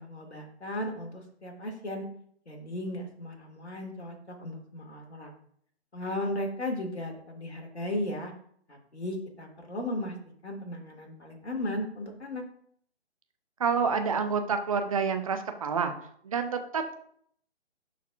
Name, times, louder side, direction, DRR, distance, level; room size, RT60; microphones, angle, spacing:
voice 1, 0.0-2.1 2.5-5.3 5.9-8.3 8.7-10.1 10.4-12.4, left 1 dB, 70° left, 2 dB, 2.0 m, -36 dB
voice 2, 13.6-15.9 16.2-16.9, right 5 dB, 30° right, 7 dB, 0.6 m, -28 dB
11.5 x 4.2 x 2.5 m, 0.63 s
figure-of-eight pair, 135°, 34 cm